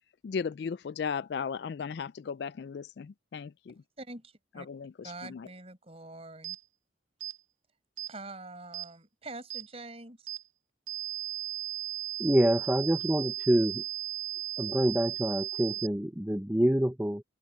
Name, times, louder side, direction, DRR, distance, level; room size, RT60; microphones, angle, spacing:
voice 1, 0.2-3.7 4.7-5.5, left 6 dB, 60° left, 0.3 m, -36 dB
voice 2, 4.0-4.7 5.0-6.6 8.1-10.3, right 2 dB, 30° right, 5.5 m, -45 dB
sound 1, 6.4-6.6 7.2-7.4 8.0-8.1 8.7-8.9 9.5-9.7 10.3-10.4 10.9-15.9, right 13 dB, 80° right, 0.6 m, -36 dB
voice 3, 12.2-13.8 14.6-17.2, equal, 10° right, 0.7 m, -26 dB
head